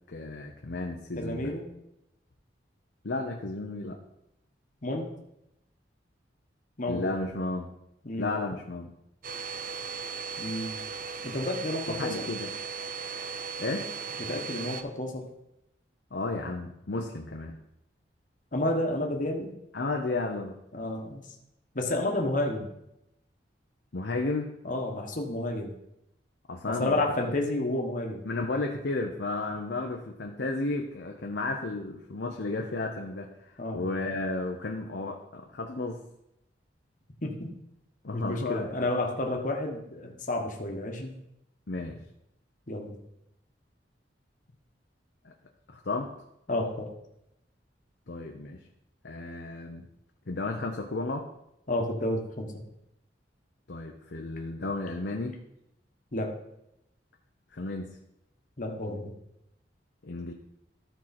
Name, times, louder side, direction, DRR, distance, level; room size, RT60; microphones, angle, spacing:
voice 1, 0.1-1.5 3.0-4.0 6.9-7.7 8.2-8.9 11.9-12.5 13.6-13.9 16.1-17.6 19.7-20.6 23.9-24.5 26.5-27.0 27.3-27.4 28.2-36.0 38.0-38.9 41.7-42.0 45.2-45.3 45.7-46.1 48.1-48.6 49.0-49.9 50.3-51.3 53.7-55.4 57.5-58.0 60.0-60.3, left 2 dB, 65° left, 1 dB, 0.8 m, -33 dB
voice 2, 1.2-1.7 4.8-5.1 6.8-7.0 8.0-8.3 10.4-10.8 11.2-12.3 14.3-15.2 18.5-19.5 20.7-21.2 21.7-22.7 24.6-25.8 26.7-28.2 33.6-33.8 37.2-37.5 38.1-41.1 42.7-43.0 46.5-46.9 51.7-52.6 56.1-56.3 58.6-59.1, left 1 dB, 45° left, 2 dB, 1.3 m, -30 dB
Domestic sounds home sounds, 9.2-14.8, right 5 dB, 50° right, 0.6 m, -37 dB
13.0 x 4.6 x 4.3 m, 0.83 s
head